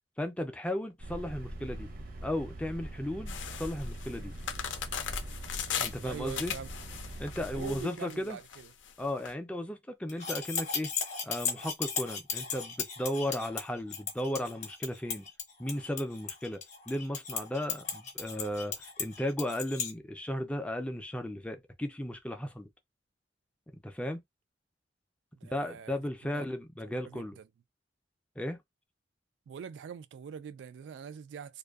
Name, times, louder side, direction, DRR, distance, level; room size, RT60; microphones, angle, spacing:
voice 1, 0.2-1.9 2.2-4.3 5.7-6.5 7.2-8.4 9.0-10.9 11.2-15.3 15.6-22.7 23.8-24.2 25.4-27.4 28.4-28.6, left 1 dB, 5° left, 0.4 m, -35 dB
sound 1, 1.0-7.8, right 1 dB, 50° right, 0.7 m, -42 dB
sound 2, 3.3-9.3, left 8 dB, 90° left, 0.5 m, -38 dB
voice 2, 6.0-6.7 7.5-8.7 25.3-26.0 26.3-26.5 26.8-27.4 29.5-31.6, right 7 dB, 70° right, 0.3 m, -43 dB
sound 3, 10.1-19.9, left 6 dB, 40° left, 0.7 m, -36 dB
2.5 x 2.3 x 2.3 m
head